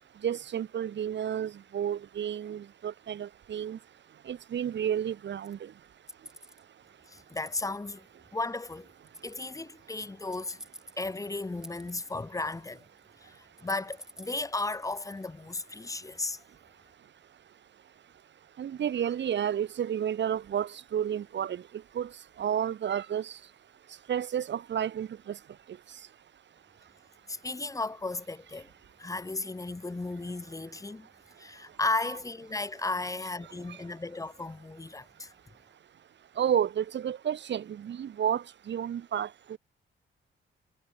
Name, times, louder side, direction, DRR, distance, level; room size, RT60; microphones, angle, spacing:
voice 1, 0.2-3.8 4.3-5.7 18.6-21.6 22.0-22.1 22.4-23.4 24.1-25.4 33.7-33.8 36.4-39.6, right 9 dB, 60° right, 1.8 m, -31 dB
sound 1, 5.4-5.5 6.1-6.6 7.2-7.7 9.1-9.6 10.3-11.2 11.6-12.2 12.5-13.0 13.3-15.2, equal, ahead, 2.1 m, -48 dB
voice 2, 7.1-8.1 8.3-8.9 9.2-10.6 11.0-12.8 13.2-16.4 27.3-28.7 29.0-31.1 31.4-35.3, left 3 dB, 15° left, 1.3 m, -35 dB
cardioid pair, 125°, 21 cm